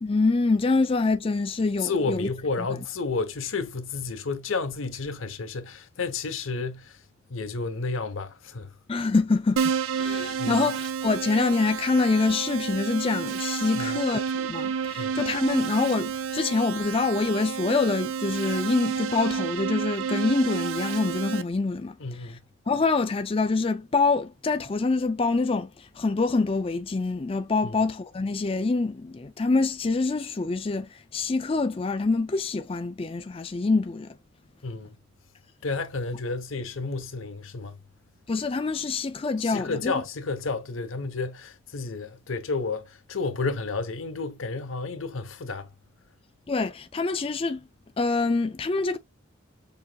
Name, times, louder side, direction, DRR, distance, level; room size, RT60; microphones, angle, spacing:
voice 1, 0.0-2.3 2.6-2.7 8.9-22.0 22.7-34.1 38.3-40.0 46.5-47.6 48.0-49.0, left 3 dB, 25° left, 0.4 m, -25 dB
voice 2, 1.8-6.9 7.3-8.7 10.4-10.7 13.7-14.0 15.0-15.2 22.0-22.4 27.6-27.7 34.6-35.0 35.6-37.8 39.4-45.7, left 4 dB, 80° left, 0.8 m, -31 dB
Keyboard (musical), 9.6-21.4, right 6 dB, 80° right, 0.6 m, -30 dB
6.9 x 2.9 x 2.3 m
head